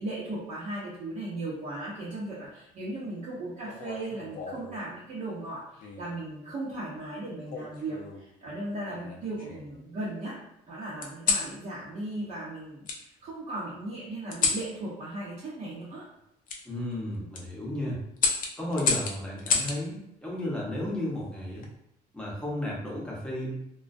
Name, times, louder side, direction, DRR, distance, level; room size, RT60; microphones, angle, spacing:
voice 1, 0.0-10.4 10.7-16.0, right 2 dB, 50° right, -8 dB, 0.7 m, -37 dB
sound 1, 3.7-4.8 5.8-6.2 7.5-8.3 8.9-9.8 11.0-11.5 12.9-13.0 14.3-14.7 16.5-16.6 17.1-17.4 18.2-19.8 21.3-21.7, left 5 dB, 55° left, 0.5 m, -30 dB
voice 2, 16.6-18.0 18.6-21.6 22.1-23.6, left 1 dB, 5° left, -5 dB, 0.8 m, -33 dB
2.3 x 2.1 x 2.5 m, 0.79 s
cardioid pair, 110°, 17 cm